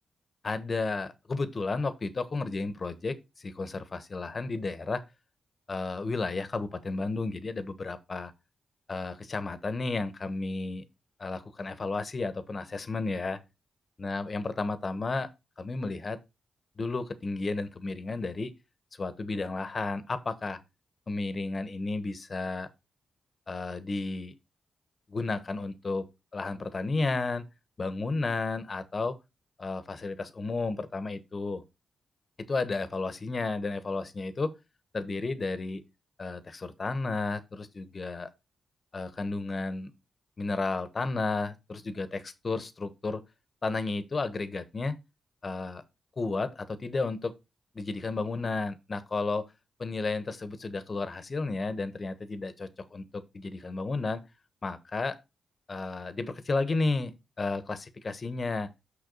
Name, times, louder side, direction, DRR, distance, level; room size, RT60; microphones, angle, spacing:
voice 1, 0.4-5.0 5.7-8.3 8.9-10.8 11.2-13.4 14.0-15.3 15.6-16.2 16.8-18.5 19.0-20.6 21.1-22.7 23.5-24.3 25.1-27.4 27.8-29.2 29.6-31.6 32.4-34.5 34.9-35.8 36.2-38.3 38.9-39.9 40.4-43.2 43.6-45.0 45.4-45.8 46.2-47.3 47.7-49.4 49.8-54.2 54.6-55.2 55.7-58.7, left 3 dB, 45° left, 1.2 m, -32 dB
6.6 x 5.7 x 4.0 m
supercardioid pair, 50°, 0 cm